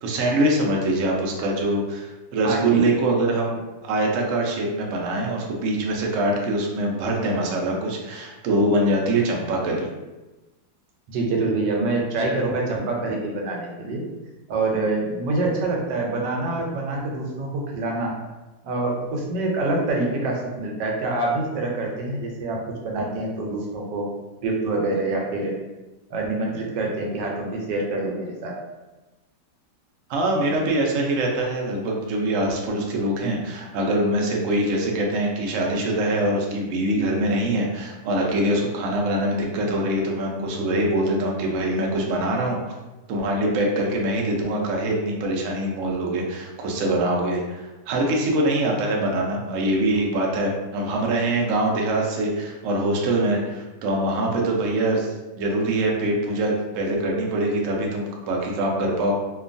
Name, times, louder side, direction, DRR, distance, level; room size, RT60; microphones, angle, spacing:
voice 1, 0.0-9.9 30.1-42.7 43.1-55.1 55.4-59.1, right 1 dB, 70° right, -1 dB, 0.7 m, -23 dB
voice 2, 2.4-2.8 11.1-14.0 14.5-18.1 18.6-22.6 22.8-24.1 24.4-25.5 26.1-28.5, right 2 dB, 90° right, 0 dB, 1.3 m, -26 dB
2.9 x 2.3 x 2.5 m, 1.1 s
omnidirectional pair, 1.9 m